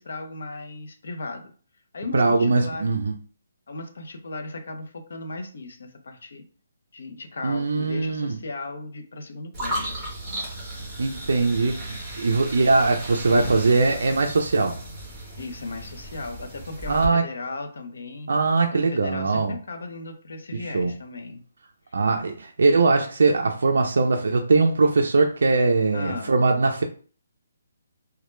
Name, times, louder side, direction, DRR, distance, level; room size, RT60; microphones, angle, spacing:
voice 1, 0.0-1.4 1.9-2.9 3.7-6.4 6.9-9.9 15.4-18.3 18.7-21.4 25.9-26.3, left 3 dB, 60° left, 5 dB, 0.5 m, -36 dB
voice 2, 2.1-3.1 7.4-8.3 11.0-14.7 16.9-17.2 18.3-19.5 20.5-20.9 21.9-26.8, right 3 dB, 65° right, 3 dB, 0.3 m, -21 dB
sound 1, 9.5-17.1, right 1 dB, 5° right, 0.7 m, -35 dB
2.1 x 2.1 x 3.0 m, 0.41 s
hypercardioid pair, 175°, 0 cm